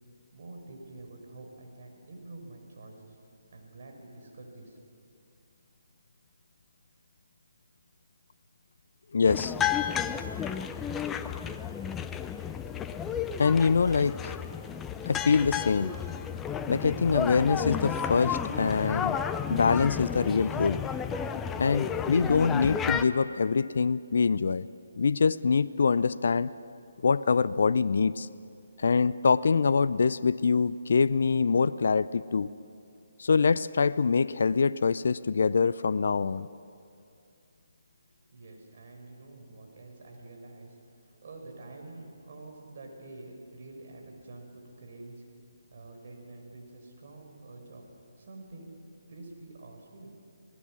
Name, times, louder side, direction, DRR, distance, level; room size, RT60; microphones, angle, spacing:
voice 1, 0.3-3.2 3.5-4.8 38.3-40.8 41.0-45.2 45.7-47.9 48.2-48.7 49.1-50.1, right 2 dB, 50° right, 2 dB, 5.0 m, -47 dB
voice 2, 9.1-9.5 13.4-14.4 15.1-16.0 16.7-19.2 19.5-20.8 21.6-24.7 25.0-26.5 27.0-28.3 28.8-32.5 33.2-36.5, left 5 dB, 60° left, 15 dB, 0.4 m, -24 dB
sound 1, 9.3-23.0, left 8 dB, 10° left, 0.6 m, -32 dB
26.5 x 18.5 x 6.1 m, 2.5 s
figure-of-eight pair, 145°, 0 cm